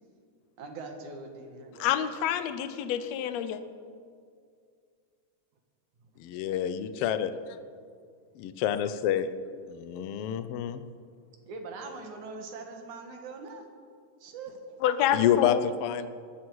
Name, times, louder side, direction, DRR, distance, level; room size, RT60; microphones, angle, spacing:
voice 1, 0.6-1.9 11.5-13.7 14.2-14.8 15.4-15.5, right 3 dB, 70° right, 4 dB, 3.0 m, -42 dB
voice 2, 1.8-3.6 14.8-15.6, left 10 dB, 70° left, 11 dB, 1.9 m, -28 dB
voice 3, 6.2-7.3 8.4-9.3 9.7-10.8 15.1-15.5 15.8-16.1, left 10 dB, 90° left, 11 dB, 1.2 m, -28 dB
20.5 x 14.5 x 4.7 m, 2.2 s
omnidirectional pair, 3.6 m